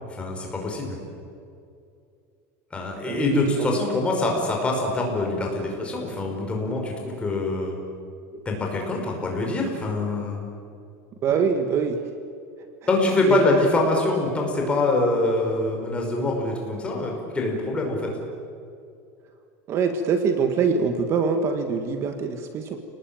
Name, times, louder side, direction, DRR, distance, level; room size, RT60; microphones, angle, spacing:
voice 1, 0.1-1.0 2.7-7.7 8.5-10.5 12.9-18.1, left 2 dB, 15° left, 0 dB, 5.5 m, -24 dB
voice 2, 3.0-3.7 11.2-12.0 13.3-13.4 19.7-22.8, right 5 dB, 35° right, 7 dB, 1.6 m, -24 dB
29.5 x 19.5 x 9.1 m, 2.5 s
supercardioid pair, 160°, 8 cm